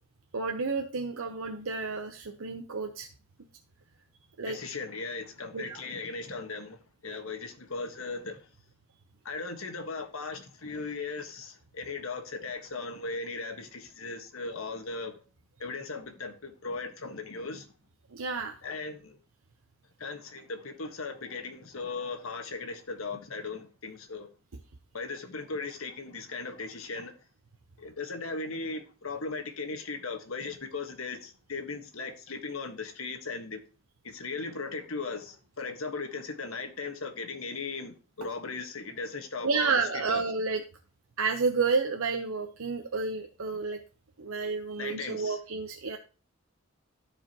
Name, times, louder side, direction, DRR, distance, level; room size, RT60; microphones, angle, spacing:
voice 1, 0.3-3.1 4.4-4.6 5.5-5.8 18.1-18.5 39.4-40.6 41.2-43.8 44.2-46.0, right 4 dB, 90° right, 0.8 m, -30 dB
voice 2, 4.5-6.8 7.0-8.4 9.2-15.1 15.6-17.6 18.6-19.2 20.0-24.3 24.9-27.1 27.8-33.6 34.0-39.8 40.0-40.2 44.8-45.4, left 4 dB, 90° left, 1.4 m, -37 dB
14.0 x 4.9 x 2.9 m
head